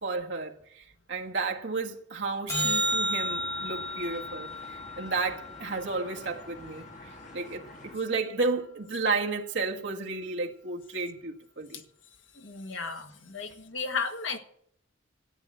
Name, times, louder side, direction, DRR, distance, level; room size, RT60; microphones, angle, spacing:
voice 1, 0.0-6.9 7.3-11.8, right 3 dB, 65° right, 1.8 m, -32 dB
sound 1, 2.5-7.0 13.5-13.6, equal, 15° left, 1.4 m, -33 dB
sound 2, 2.6-8.0, left 1 dB, 40° left, 2.0 m, -47 dB
voice 2, 12.3-14.4, left 5 dB, 75° left, 1.6 m, -34 dB
14.0 x 9.2 x 7.5 m
head